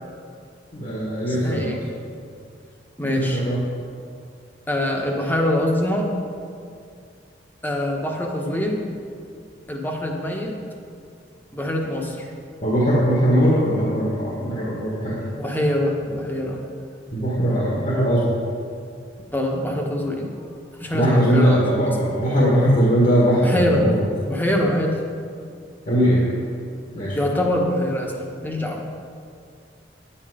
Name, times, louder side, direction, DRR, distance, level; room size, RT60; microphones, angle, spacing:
voice 1, 0.7-1.8 3.0-3.6 12.6-15.3 17.1-18.3 20.9-24.0 25.9-26.4 26.9-27.2, equal, 45° left, -6 dB, 1.7 m, -20 dB
voice 2, 1.2-1.8 3.0-3.4 4.7-6.1 7.6-8.8 9.7-10.5 11.5-12.3 15.4-16.6 19.3-20.3 20.8-21.6 23.4-23.8 24.2-24.9 27.1-28.1 28.4-28.8, left 1 dB, 10° left, 0 dB, 1.2 m, -24 dB
10.5 x 8.9 x 5.1 m, 2.3 s
head